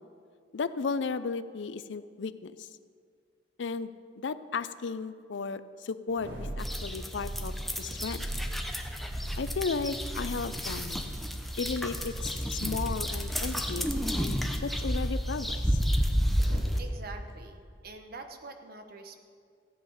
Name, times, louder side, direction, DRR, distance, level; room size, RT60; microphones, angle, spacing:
voice 1, 0.5-2.7 3.6-6.3 6.6-8.3 9.4-11.1 11.6-15.8, left 4 dB, 70° left, 13 dB, 0.5 m, -35 dB
sound 1, 6.1-16.8 17.2-17.3, right 1 dB, 80° right, 2.0 m, -39 dB
sound 2, 6.6-16.8, equal, ahead, 0.7 m, -32 dB
voice 2, 16.8-19.2, right 3 dB, 55° right, 6 dB, 1.0 m, -45 dB
15.0 x 8.3 x 5.6 m, 2.2 s
head